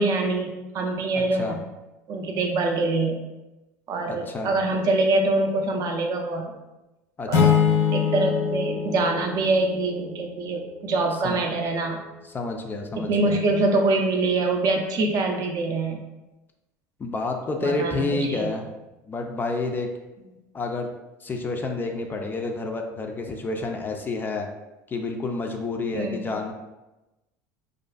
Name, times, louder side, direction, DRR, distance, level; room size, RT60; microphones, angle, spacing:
voice 1, 0.0-1.6 2.1-3.2 3.9-6.6 7.3-7.5 7.9-12.0 13.0-16.0 17.6-18.5 25.9-26.3, right 2 dB, 50° right, 2 dB, 0.5 m, -24 dB
voice 2, 1.1-1.6 4.1-4.6 7.2-7.6 11.2-11.4 12.2-13.4 17.0-18.7 19.1-19.9 20.5-20.9 21.2-24.5 24.9-26.5, left 3 dB, 25° left, 3 dB, 0.3 m, -29 dB
sound 1, 7.3-10.1, left 7 dB, 80° left, 0.6 m, -23 dB
2.4 x 2.4 x 2.3 m, 1.0 s
supercardioid pair, 90°, 8 cm